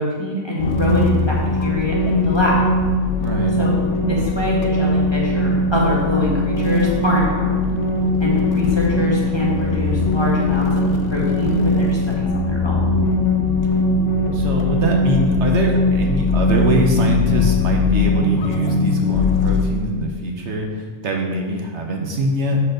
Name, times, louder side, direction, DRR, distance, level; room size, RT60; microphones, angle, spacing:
voice 1, 0.0-2.6 3.6-3.7 4.1-7.5 8.2-10.8 11.1-12.9, left 1 dB, 20° left, -5 dB, 1.6 m, -23 dB
sound 1, 0.6-19.6, left 2 dB, 75° left, 1.0 m, -20 dB
voice 2, 3.2-3.6 14.3-22.6, right 1 dB, 65° right, 1 dB, 1.2 m, -23 dB
6.3 x 4.5 x 6.5 m, 1.5 s
omnidirectional pair, 1.3 m